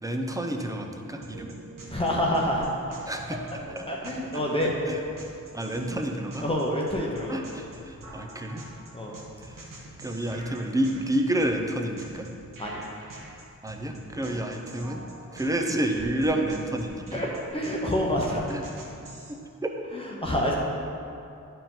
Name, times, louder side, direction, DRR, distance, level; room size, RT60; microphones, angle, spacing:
voice 1, 0.0-1.6 3.1-3.4 3.8-3.9 4.9-5.0 5.5-6.4 7.3-8.6 9.4-9.6 10.0-12.3 13.6-15.0 15.3-17.2 18.5-18.6 19.6-19.8, right 1 dB, 10° right, 3 dB, 0.6 m, -29 dB
sound 1, 1.2-19.3, right 2 dB, 90° right, 1.2 m, -45 dB
voice 2, 1.9-2.6 3.3-3.4 3.9-4.8 6.4-7.4 8.9-9.1 12.6-12.8 14.2-14.4 17.1-18.4 19.9-20.5, equal, 15° left, -3 dB, 0.8 m, -27 dB
11.0 x 4.7 x 3.8 m, 2.6 s
wide cardioid pair, 105°, 32 cm